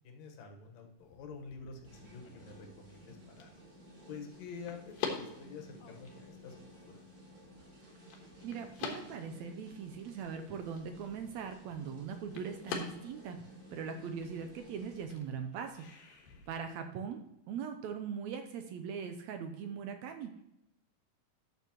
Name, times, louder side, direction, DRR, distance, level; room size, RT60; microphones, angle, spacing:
voice 1, 0.0-3.5 4.1-7.0, left 5 dB, 65° left, 2 dB, 2.3 m, -48 dB
sound 1, 1.0-16.5, left 6 dB, 90° left, 3.1 m, -47 dB
sound 2, 1.8-15.1, equal, 40° right, 3.1 m, -55 dB
voice 2, 8.4-13.4 13.7-16.1 16.5-17.2 17.5-20.4, right 6 dB, 80° right, 6 dB, 1.6 m, -41 dB
12.0 x 7.1 x 3.0 m, 0.85 s
omnidirectional pair, 3.9 m